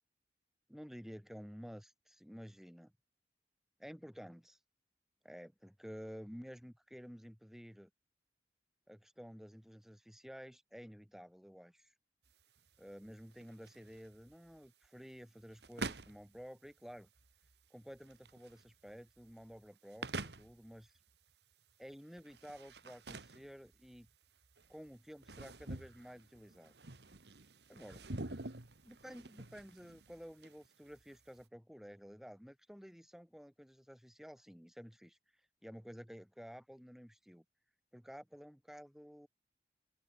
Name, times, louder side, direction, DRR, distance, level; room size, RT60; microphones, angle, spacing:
voice 1, 0.7-2.9 3.8-4.6 5.2-7.9 8.9-11.9 12.8-17.1 17.7-20.9 21.8-24.1 24.7-26.7 27.7-28.1 28.8-35.2 35.6-37.4 37.9-39.3, equal, ahead, 2.2 m, -52 dB
sound 1, 12.3-31.4, right 3 dB, 75° right, 1.9 m, -49 dB
open air
head